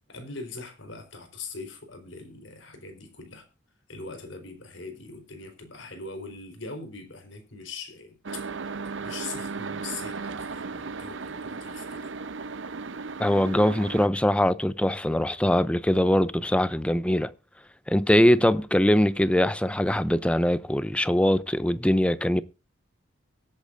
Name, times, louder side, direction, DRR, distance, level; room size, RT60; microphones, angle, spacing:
voice 1, 0.1-3.5 3.9-12.1, left 3 dB, 85° left, 4.2 m, -41 dB
sound 1, 8.2-14.1, right 4 dB, 75° right, 0.8 m, -36 dB
voice 2, 13.2-17.3 17.9-22.4, left 1 dB, 5° left, 0.5 m, -22 dB
23.5 x 8.3 x 2.6 m
head